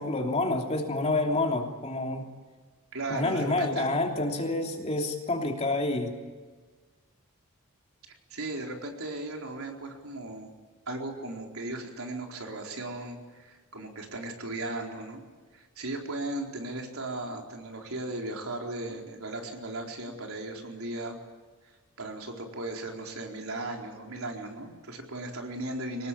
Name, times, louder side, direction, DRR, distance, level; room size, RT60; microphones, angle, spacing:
voice 1, 0.0-2.3 3.1-6.1, left 2 dB, 30° left, 2 dB, 3.1 m, -28 dB
voice 2, 2.9-3.9 8.3-10.5 10.9-15.2 15.5-21.2 22.0-26.1, right 2 dB, 70° right, 1 dB, 4.3 m, -36 dB
24.5 x 19.5 x 8.7 m, 1.4 s
head